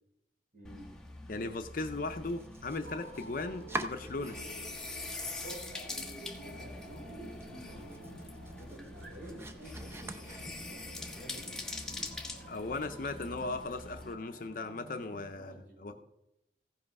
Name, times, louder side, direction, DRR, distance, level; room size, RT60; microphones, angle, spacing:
voice 1, 0.5-0.9 6.4-12.2 15.3-15.9, right 1 dB, 50° right, -3 dB, 4.2 m, -51 dB
sound 1, 0.6-14.1, left 2 dB, 5° left, 1.2 m, -44 dB
voice 2, 1.3-4.4 12.5-15.9, left 3 dB, 50° left, 7 dB, 0.6 m, -37 dB
Domestic sounds home sounds, 2.2-4.8 5.1-5.9 6.2-6.3 6.7-6.8 7.2-10.9, right 2 dB, 15° right, 0.6 m, -45 dB
sound 2, 2.8-15.3, right 1 dB, 70° right, 5.0 m, -51 dB
15.5 x 5.6 x 5.4 m, 0.88 s
head